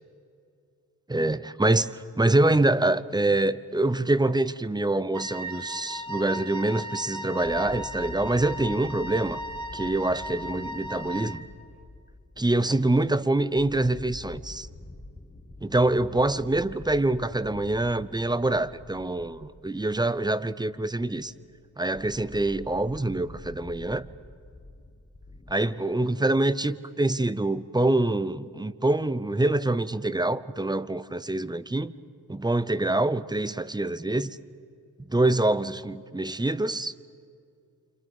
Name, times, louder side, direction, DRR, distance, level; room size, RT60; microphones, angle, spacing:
voice 1, 1.1-9.4 9.7-11.5 12.4-14.7 15.6-21.3 21.8-24.1 25.5-31.9 32.3-34.4 35.1-36.9, right 2 dB, 10° right, 0.7 m, -25 dB
Wind instrument woodwind instrument, 5.1-11.5, equal, 50° right, 1.6 m, -37 dB
sound 1, 7.4-25.5, left 2 dB, 20° left, 1.5 m, -46 dB
28.5 x 26.5 x 5.5 m
cardioid pair, 70°, 37 cm